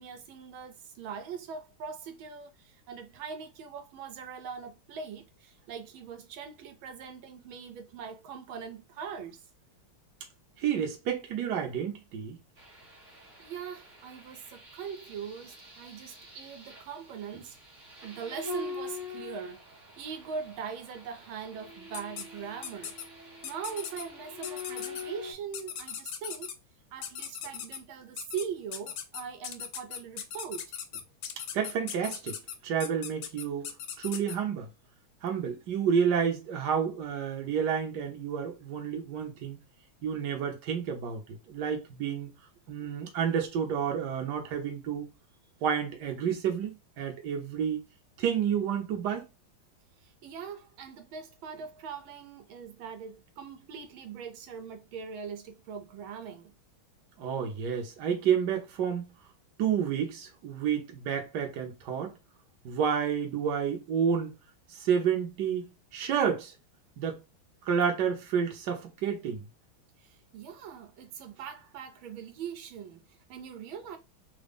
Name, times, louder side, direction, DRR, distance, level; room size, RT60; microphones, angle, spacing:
voice 1, 0.0-9.5 13.4-17.6 18.0-19.6 20.0-22.9 23.4-26.6 26.9-31.0 42.8-42.9 50.0-56.5 70.0-74.0, right 6 dB, 75° right, 1.6 m, -41 dB
voice 2, 10.6-12.4 31.5-32.4 32.6-33.7 34.0-34.7 35.2-39.6 40.0-42.3 42.7-45.1 45.6-47.8 48.2-49.3 57.2-59.1 59.6-62.1 62.6-64.3 64.7-66.5 67.0-67.2 67.7-69.4, right 7 dB, 60° right, 1.4 m, -30 dB
sound 1, 12.6-25.3, left 3 dB, 40° right, 1.5 m, -44 dB
sound 2, 21.9-22.2 22.6-23.0 23.4-24.0 24.4-25.0 25.5-26.5 27.0-27.8 28.2-28.4 28.7-34.4, left 8 dB, 75° left, 1.0 m, -38 dB
3.9 x 2.2 x 3.5 m
omnidirectional pair, 2.3 m